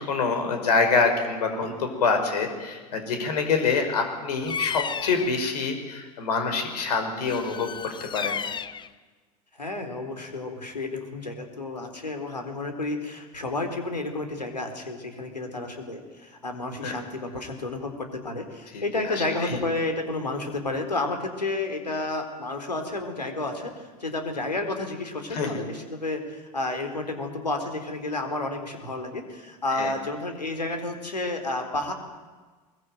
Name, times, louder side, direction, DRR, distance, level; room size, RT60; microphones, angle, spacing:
voice 1, 0.0-8.4 16.8-17.0 18.7-19.6 25.3-25.6 29.7-29.9, left 4 dB, 70° left, 6 dB, 5.7 m, -26 dB
Bird vocalization bird call bird song, 4.4-5.4 7.3-8.9, left 7 dB, 20° left, 1.0 m, -32 dB
voice 2, 9.6-31.9, left 2 dB, 90° left, 5 dB, 4.1 m, -31 dB
24.0 x 23.0 x 9.3 m, 1.3 s
figure-of-eight pair, 80°, 21 cm